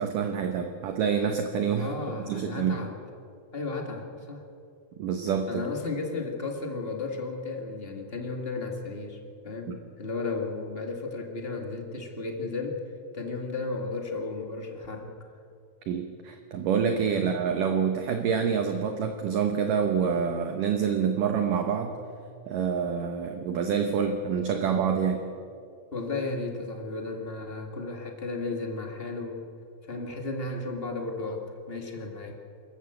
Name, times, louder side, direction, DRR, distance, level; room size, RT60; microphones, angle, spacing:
voice 1, 0.0-2.0 2.3-2.8 5.0-5.6 9.7-9.8 15.9-22.0 22.5-25.2, right 7 dB, 65° right, 6 dB, 2.3 m, -27 dB
voice 2, 1.8-3.0 3.5-4.4 5.5-12.8 13.1-15.1 17.2-17.3 25.9-29.5 29.9-32.4, left 3 dB, 30° left, 2 dB, 1.0 m, -34 dB
25.5 x 14.5 x 8.0 m, 2.3 s
omnidirectional pair, 4.7 m